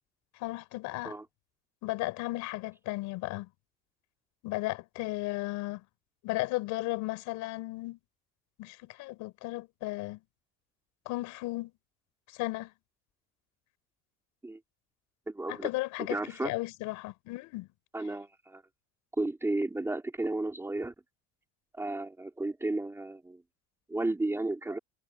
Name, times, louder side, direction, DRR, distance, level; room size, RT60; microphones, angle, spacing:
voice 1, 0.3-1.2 1.8-3.5 4.4-5.8 6.2-8.0 8.6-10.2 11.0-11.7 12.3-12.7 15.5-17.7, left 20 dB, 75° left, 4.8 m, -35 dB
voice 2, 15.3-15.7 16.1-16.5 17.9-18.6 19.2-20.9 21.8-23.4 23.9-24.8, right 2 dB, 10° right, 3.2 m, -33 dB
cardioid pair, 155°, 30 cm